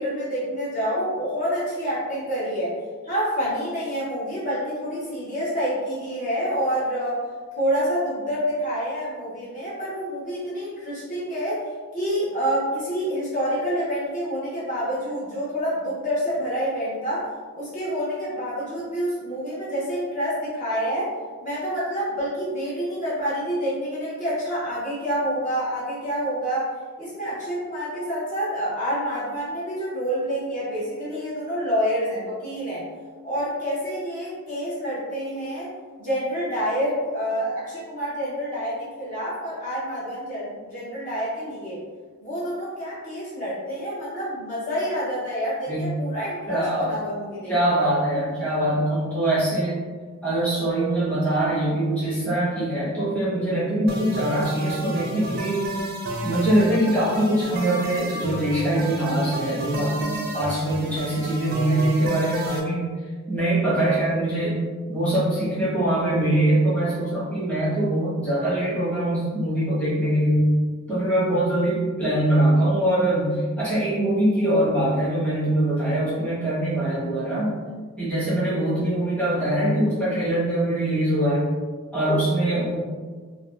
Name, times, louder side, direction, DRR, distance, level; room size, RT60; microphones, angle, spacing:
voice 1, 0.0-2.7 3.0-7.2 7.6-11.6 11.9-21.1 21.4-26.7 27.0-32.9 33.2-35.7 36.0-41.8 42.2-47.5 47.8-47.9, equal, 35° left, -9 dB, 0.6 m, -27 dB
voice 2, 46.5-46.9 47.5-49.8 50.2-55.9 56.2-62.9 63.3-64.6 64.9-70.5 70.9-77.6 78.0-81.5 81.9-82.8, right 1 dB, 5° left, -10 dB, 0.8 m, -23 dB
sound 1, 53.9-62.6, right 1 dB, 45° right, 0.4 m, -31 dB
2.4 x 2.1 x 3.1 m, 1.5 s
head